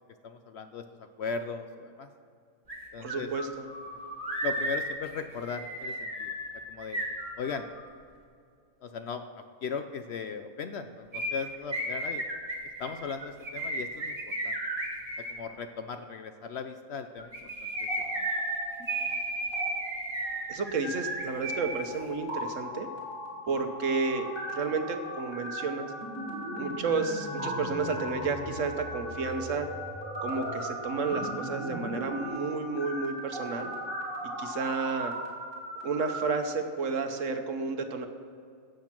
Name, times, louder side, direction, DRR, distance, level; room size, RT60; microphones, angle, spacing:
voice 1, 0.2-0.8 1.2-2.1 2.9-3.3 4.4-6.3 6.7-7.0 7.4-7.7 8.8-12.2 12.8-14.2 14.4-14.5 15.3-17.3 17.6-17.7 18.2-18.3, left 5 dB, 60° left, 8 dB, 0.7 m, -37 dB
sound 1, 2.7-2.8 3.1-7.8 11.1-15.3 17.2-21.8 22.1-22.2, right 1 dB, 25° right, 2.1 m, -34 dB
voice 2, 3.0-3.7 20.5-22.9 23.5-25.9 26.5-29.7 30.2-33.7 34.4-35.1 35.8-38.1, right 4 dB, 65° right, 6 dB, 1.2 m, -31 dB
sound 2, 17.7-19.1 19.4-19.7 20.2-36.2, equal, 15° left, 2.5 m, -38 dB
16.5 x 6.4 x 6.0 m, 2.3 s
omnidirectional pair, 1.5 m